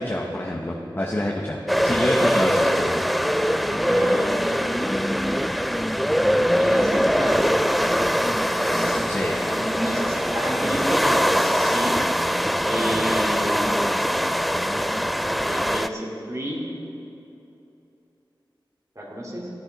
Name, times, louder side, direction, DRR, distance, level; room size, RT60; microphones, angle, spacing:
voice 1, 0.0-3.0 9.1-9.3 9.9-10.0, left 1 dB, 25° left, -2 dB, 1.0 m, -27 dB
sound 1, 1.7-15.9, equal, ahead, 0.3 m, -22 dB
voice 2, 3.8-4.6 6.6-7.5 8.7-11.9 12.6-13.8 15.4-16.6 19.0-19.5, equal, 40° right, -4 dB, 2.5 m, -31 dB
14.5 x 9.3 x 4.0 m, 2.9 s
wide cardioid pair, 45°, 9 cm